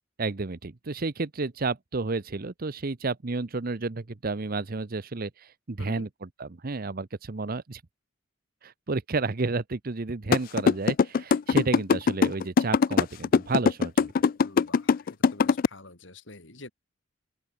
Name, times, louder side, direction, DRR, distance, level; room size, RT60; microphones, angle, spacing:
voice 1, 0.2-7.8 8.6-14.1, right 3 dB, 50° right, 0.8 m, -31 dB
sound 1, 10.3-15.7, left 5 dB, 45° left, 0.3 m, -21 dB
voice 2, 14.4-16.7, left 2 dB, 70° left, 4.5 m, -47 dB
open air
head